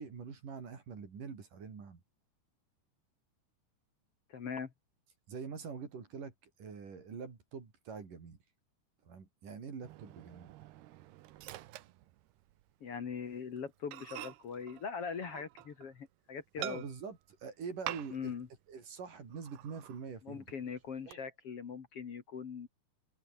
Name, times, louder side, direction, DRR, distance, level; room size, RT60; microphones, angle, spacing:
voice 1, 0.0-2.0 5.3-8.4 9.0-10.5 16.6-18.3 18.7-20.5 21.0-21.2, right 5 dB, 50° right, 5.4 m, -45 dB
voice 2, 4.3-4.7 12.8-16.8 18.1-18.5 20.2-22.7, left 6 dB, 45° left, 2.2 m, -41 dB
Microwave oven, 9.8-12.7 13.0-13.2 13.6-13.7 13.9-16.0 16.6-17.2 17.8-18.4 18.7-18.8 19.3-20.0 20.5-21.1, right 15 dB, 75° right, 3.0 m, -47 dB
omnidirectional pair, 4.9 m